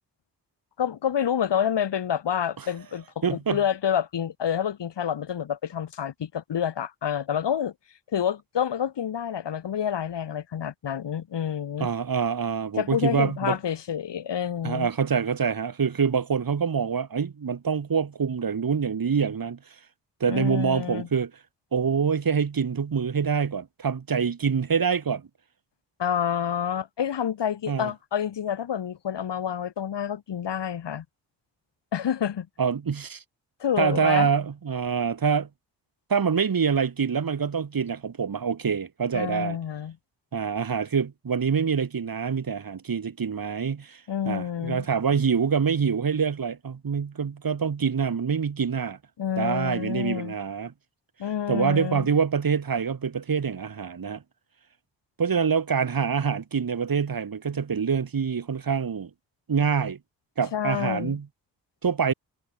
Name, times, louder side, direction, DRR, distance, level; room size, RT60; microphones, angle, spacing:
voice 1, 0.8-7.7 8.1-11.9 12.8-14.9 20.3-21.1 26.0-31.0 31.9-32.5 33.6-34.3 39.1-40.0 44.1-44.9 49.2-50.3 51.2-52.1 60.5-61.2, left 9 dB, 65° left, 3.7 m, -28 dB
voice 2, 3.2-3.6 11.8-13.6 14.6-19.6 20.2-21.3 21.7-25.3 27.7-27.9 32.6-33.2 33.8-35.5 36.1-39.6 40.3-49.0 49.4-50.7 51.5-54.2 55.2-59.1 59.5-60.0 60.4-61.3 61.8-62.1, right 6 dB, 45° right, 3.2 m, -25 dB
hypercardioid pair, 40°, 46 cm